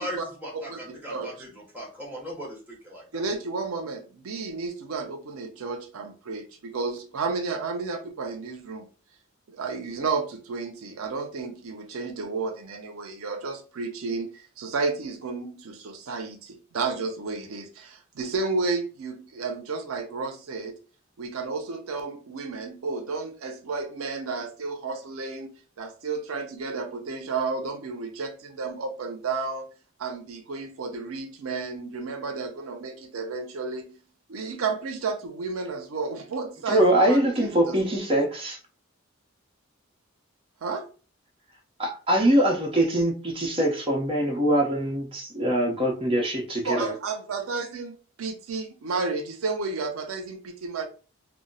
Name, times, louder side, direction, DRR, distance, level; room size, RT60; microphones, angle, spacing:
voice 1, 0.0-3.2, equal, 10° right, 1.0 m, -38 dB
voice 2, 0.5-1.3 3.1-8.9 9.5-20.8 21.2-29.7 30.0-34.0 34.3-37.8 40.6-40.9 46.6-50.9, right 4 dB, 90° right, 0.5 m, -32 dB
voice 3, 36.7-38.6 41.8-46.9, right 1 dB, 25° right, 0.7 m, -23 dB
2.2 x 2.0 x 3.8 m
head